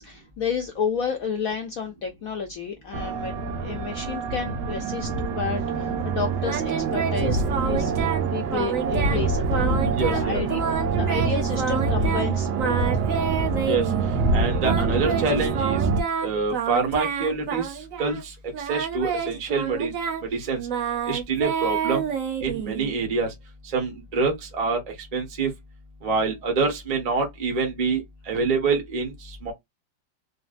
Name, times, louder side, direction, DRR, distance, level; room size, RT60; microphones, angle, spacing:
voice 1, 0.0-3.4 3.6-7.9 8.3-10.6 10.9-13.0, left 6 dB, 70° left, 0.8 m, -31 dB
sound 1, 2.9-16.0, right 4 dB, 90° right, 1.4 m, -25 dB
Singing, 6.4-8.2 8.5-9.2 9.5-10.2 10.5-12.3 12.6-14.0 14.6-18.2 18.5-23.0, right 6 dB, 55° right, 1.0 m, -28 dB
voice 2, 9.9-10.4 13.6-13.9 14.3-15.8 16.2-19.9 20.3-20.6 21.1-22.1 22.4-23.3 23.7-24.8 25.1-25.5 26.0-29.5, right 4 dB, 25° right, 0.9 m, -26 dB
4.0 x 2.1 x 2.4 m
omnidirectional pair, 2.1 m